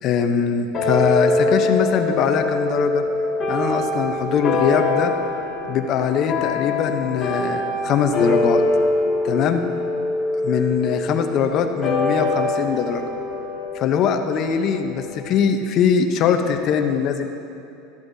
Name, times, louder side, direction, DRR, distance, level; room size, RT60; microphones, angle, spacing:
voice 1, 0.0-3.0 3.5-5.1 5.7-8.6 9.2-9.6 10.4-13.1 13.7-17.3, left 7 dB, 35° left, 6 dB, 0.7 m, -21 dB
sound 1, 0.7-15.5, left 2 dB, 20° left, 1.9 m, -24 dB
13.0 x 12.0 x 2.7 m, 2.8 s
supercardioid pair, 160°, 0 cm